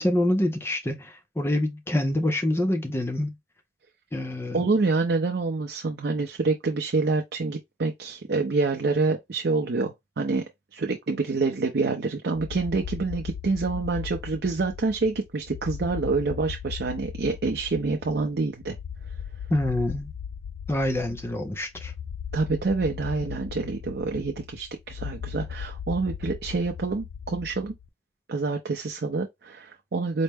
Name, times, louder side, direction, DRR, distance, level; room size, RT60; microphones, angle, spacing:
voice 1, 0.0-3.3 4.1-4.7 19.5-20.1 20.7-21.9, left 1 dB, 15° left, 0.4 m, -26 dB
voice 2, 4.5-10.4 10.7-18.7 22.3-27.7 28.3-30.2, right 3 dB, 60° right, 0.5 m, -27 dB
sound 1, 12.3-27.9, left 7 dB, 90° left, 0.3 m, -38 dB
4.2 x 2.0 x 3.4 m
head